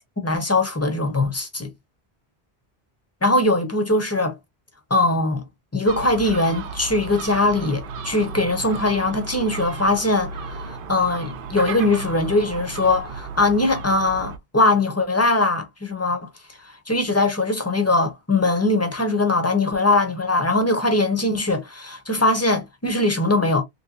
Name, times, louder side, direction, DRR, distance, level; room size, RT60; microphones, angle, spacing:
voice 1, 0.2-1.7 3.2-4.4 4.9-5.4 5.7-16.3 16.6-23.6, left 2 dB, 15° left, 0.7 m, -21 dB
Gull seagull, 5.9-14.4, right 4 dB, 60° right, 0.7 m, -34 dB
3.2 x 3.1 x 2.6 m
omnidirectional pair, 1.1 m